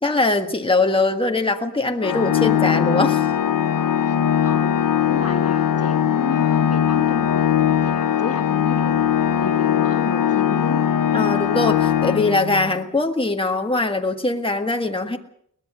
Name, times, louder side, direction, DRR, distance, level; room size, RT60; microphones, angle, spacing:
voice 1, 0.0-3.2 11.1-15.2, left 2 dB, 15° left, 4 dB, 1.7 m, -21 dB
Organ, 2.0-12.8, left 9 dB, 85° left, 0.8 m, -20 dB
voice 2, 4.4-10.8, left 4 dB, 50° left, 6 dB, 1.2 m, -32 dB
23.0 x 19.0 x 6.3 m, 0.68 s
wide cardioid pair, 125°, 32 cm